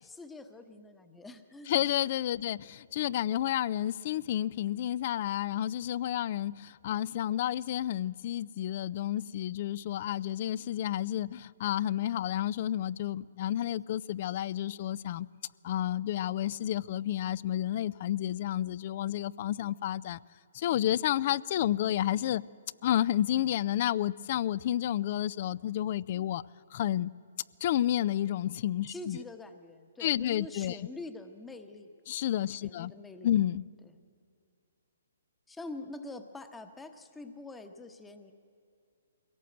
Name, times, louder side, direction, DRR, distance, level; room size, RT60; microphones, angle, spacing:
voice 1, 0.0-1.7 28.9-31.9 32.6-33.3 35.5-38.3, left 2 dB, 10° left, 1.0 m, -45 dB
voice 2, 1.7-15.3 15.6-20.2 20.5-22.4 22.8-26.4 26.7-27.1 27.6-29.2 30.0-30.8 32.1-32.9 33.2-33.6, left 12 dB, 45° left, 0.4 m, -30 dB
22.5 x 17.5 x 7.9 m
hypercardioid pair, 140°, 0 cm